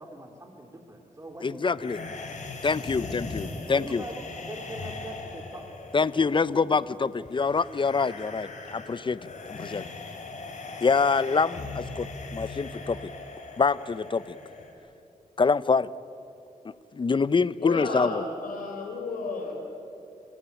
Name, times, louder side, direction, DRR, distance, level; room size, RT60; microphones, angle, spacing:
voice 1, 0.0-2.1 3.0-3.1 3.7-4.2 4.5-5.6 6.0-6.3 6.6-6.8, right 1 dB, 20° right, 2 dB, 2.9 m, -43 dB
voice 2, 1.4-2.0 2.6-4.0 5.9-9.2 9.5-9.9 10.8-13.1 13.6-14.4 15.4-15.9 16.9-18.2, left 4 dB, 35° left, 18 dB, 0.7 m, -25 dB
sound 1, 1.7-14.7, left 3 dB, 60° left, 4.0 m, -39 dB
voice 3, 17.6-19.5, left 3 dB, 85° left, 1 dB, 3.8 m, -33 dB
28.5 x 16.0 x 9.2 m, 2.7 s
cardioid pair, 70°, 14 cm